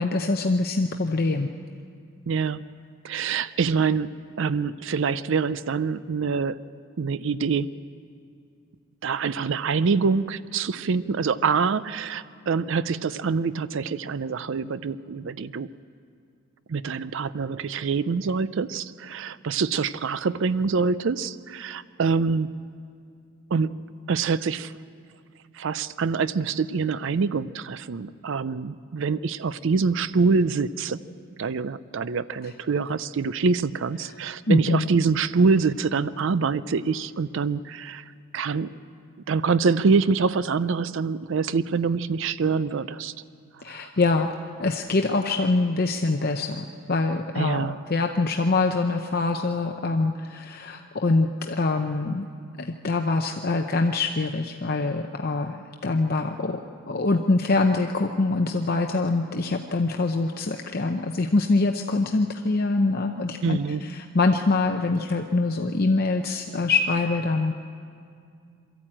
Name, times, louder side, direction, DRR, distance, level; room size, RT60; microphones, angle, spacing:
voice 1, 0.0-1.5 34.5-34.9 43.6-44.3 44.6-52.3 52.6-55.6 55.8-56.6 56.9-67.5, left 3 dB, 45° left, 4 dB, 0.7 m, -24 dB
voice 2, 2.3-2.6 3.0-6.6 7.0-7.7 9.0-15.7 16.7-22.7 23.5-24.7 25.5-31.0 31.4-38.0 38.3-38.7 39.3-43.1 43.7-43.9 47.3-47.8 63.4-63.9, right 5 dB, 60° right, 16 dB, 0.5 m, -25 dB
23.5 x 13.5 x 8.8 m, 2.3 s
head